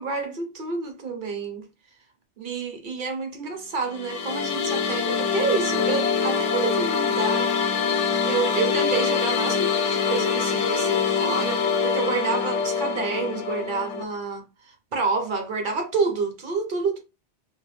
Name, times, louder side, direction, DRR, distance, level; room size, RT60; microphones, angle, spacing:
voice 1, 0.0-1.7 2.4-7.5 8.2-14.4 14.9-17.0, right 4 dB, 50° right, 0.7 m, -28 dB
sound 1, 3.8-14.0, left 6 dB, 75° left, 0.9 m, -24 dB
2.7 x 2.1 x 3.2 m
omnidirectional pair, 1.2 m